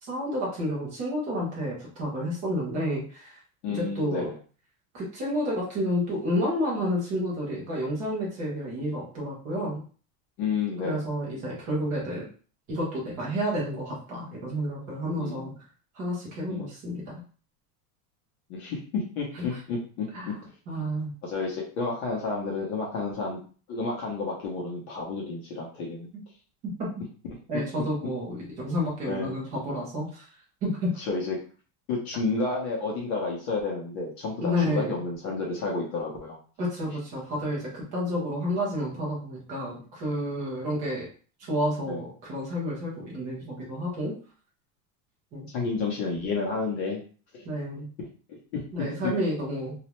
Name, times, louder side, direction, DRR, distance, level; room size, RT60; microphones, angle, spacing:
voice 1, 0.0-3.4 3.7-4.3 4.9-9.8 10.8-12.3 12.7-15.5 15.9-17.2 19.3-19.6 20.1-20.4 20.7-21.1 26.8-26.9 27.5-30.3 30.6-30.9 34.4-35.0 36.6-41.1 41.4-44.1 45.3-45.5 47.4-47.9 48.7-49.7, equal, 20° right, -4 dB, 0.4 m, -30 dB
voice 2, 3.6-4.2 10.4-11.0 15.2-15.5 16.5-16.7 18.5-20.1 21.2-23.4 23.7-26.1 29.1-29.4 31.0-31.4 31.9-36.4 41.9-42.0 43.6-43.7 45.5-47.0 47.3-47.4 48.3-48.6 49.0-49.1, left 4 dB, 45° left, -2 dB, 0.7 m, -31 dB
2.4 x 2.0 x 2.9 m, 0.40 s
supercardioid pair, 180°, 47 cm